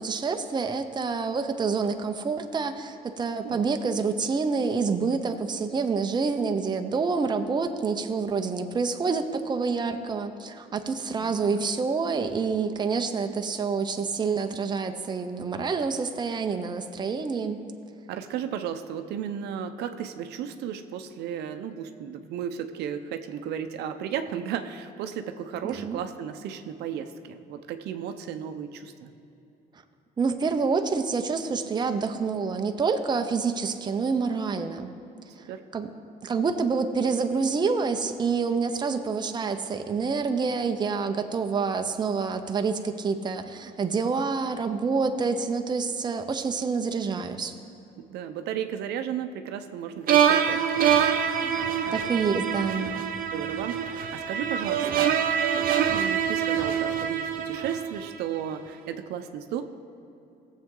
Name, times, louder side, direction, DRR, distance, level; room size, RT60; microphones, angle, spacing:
voice 1, 0.0-17.6 25.6-26.0 30.2-34.9 35.7-35.9 36.2-47.5 51.4-51.6 51.9-52.9, right 5 dB, 25° right, 6 dB, 0.7 m, -27 dB
voice 2, 11.2-11.6 18.1-29.1 35.5-35.6 48.0-51.6 51.9-52.2 52.9-53.0 53.3-55.2 55.9-59.6, right 8 dB, 80° right, 8 dB, 0.7 m, -34 dB
sound 1, 50.1-58.3, right 8 dB, 60° right, 0.9 m, -25 dB
17.5 x 7.4 x 3.8 m, 2.9 s
cardioid pair, 110°, 17 cm